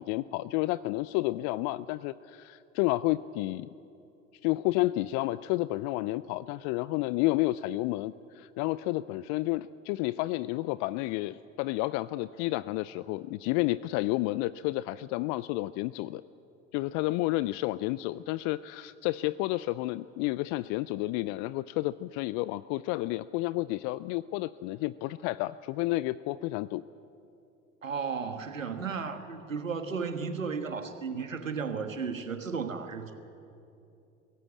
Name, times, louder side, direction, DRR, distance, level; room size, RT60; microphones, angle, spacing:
voice 1, 0.0-3.7 4.4-16.2 16.7-26.8, left 18 dB, 50° left, 18 dB, 0.5 m, -31 dB
voice 2, 27.8-33.1, right 5 dB, 90° right, 8 dB, 1.6 m, -34 dB
22.5 x 17.0 x 8.4 m, 2.7 s
figure-of-eight pair, 75°, 38 cm